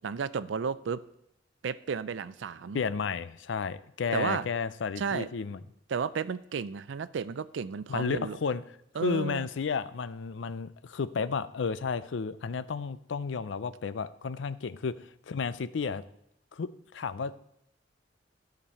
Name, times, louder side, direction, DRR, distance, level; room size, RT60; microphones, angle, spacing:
voice 1, 0.0-1.0 1.6-2.8 4.1-4.5 5.0-5.3 5.9-8.4 9.0-9.5, right 6 dB, 80° right, 16 dB, 0.4 m, -33 dB
voice 2, 2.7-5.6 7.9-8.6 9.0-16.0 16.5-17.3, left 5 dB, 80° left, 15 dB, 0.5 m, -32 dB
13.5 x 5.3 x 4.3 m, 0.78 s
head